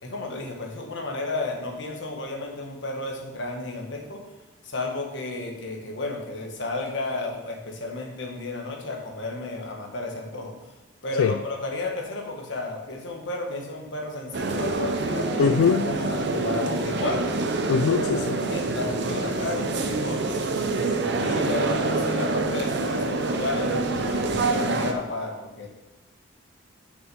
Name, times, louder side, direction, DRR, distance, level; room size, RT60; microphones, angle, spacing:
voice 1, 0.0-4.2 4.6-10.6 11.0-17.3 18.5-20.6 21.2-25.7, left 2 dB, 60° left, 1 dB, 1.3 m, -32 dB
sound 1, 14.3-24.9, right 3 dB, 55° right, 0.6 m, -26 dB
voice 2, 15.4-15.8 17.7-18.4, left 7 dB, 85° left, 9 dB, 0.3 m, -21 dB
6.2 x 6.0 x 5.4 m, 1.0 s
head